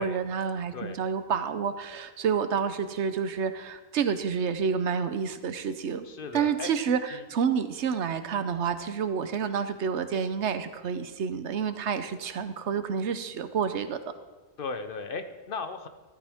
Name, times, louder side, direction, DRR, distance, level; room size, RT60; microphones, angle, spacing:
voice 1, 0.0-6.0 6.3-14.0, right 6 dB, 90° right, 11 dB, 1.1 m, -29 dB
voice 2, 6.0-6.7 7.1-7.2 14.6-15.9, left 4 dB, 55° left, 9 dB, 1.0 m, -36 dB
13.5 x 13.5 x 3.6 m, 1.2 s
omnidirectional pair, 1.1 m